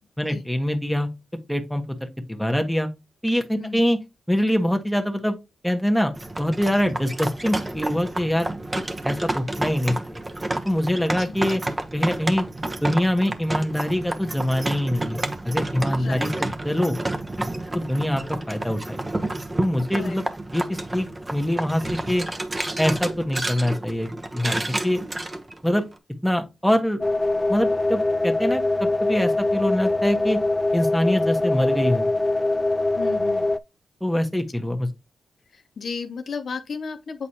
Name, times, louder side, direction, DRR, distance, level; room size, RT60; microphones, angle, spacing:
voice 1, 0.2-1.1 1.5-2.9 3.2-4.0 4.3-5.4 5.6-8.5 9.0-10.2 10.6-11.6 11.9-12.4 12.8-15.2 15.4-17.0 17.7-19.0 19.6-20.2 20.5-21.8 22.1-22.2 22.8-25.0 25.6-25.8 26.2-27.0 27.5-30.4 30.7-32.1 34.0-34.9, equal, ahead, 1.4 m, -24 dB
sound 1, 6.1-25.9, right 2 dB, 25° right, 1.0 m, -30 dB
voice 2, 15.9-16.5 19.9-20.2 33.0-33.4 35.5-37.3, left 5 dB, 70° left, 0.6 m, -34 dB
sound 2, 27.0-33.6, left 2 dB, 25° left, 0.4 m, -23 dB
8.3 x 4.1 x 2.9 m
cardioid pair, 60°, 0 cm